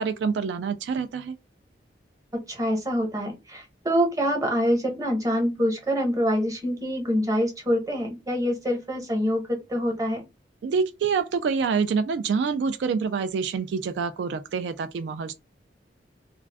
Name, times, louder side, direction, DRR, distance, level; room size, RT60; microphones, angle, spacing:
voice 1, 0.0-1.4 10.6-15.3, right 5 dB, 80° right, 0.3 m, -26 dB
voice 2, 2.5-10.2, equal, 20° right, 0.9 m, -25 dB
2.4 x 2.3 x 3.3 m
head